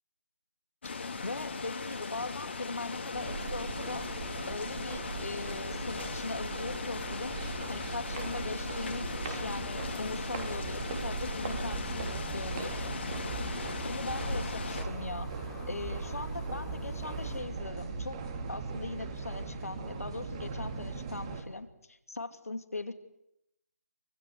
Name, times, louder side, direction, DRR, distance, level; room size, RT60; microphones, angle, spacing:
sound 1, 0.8-14.8, left 4 dB, 45° left, 3.0 m, -38 dB
voice 1, 1.2-4.1 4.5-7.4 7.7-12.9 13.5-15.3 15.7-18.2 18.5-22.9, left 3 dB, 65° left, 8 dB, 2.7 m, -40 dB
sound 2, 3.1-21.4, right 4 dB, 25° right, 3.0 m, -39 dB
sound 3, 8.6-17.4, left 4 dB, 5° left, 3.1 m, -53 dB
28.0 x 25.0 x 8.2 m, 0.83 s
figure-of-eight pair, 155°, 9 cm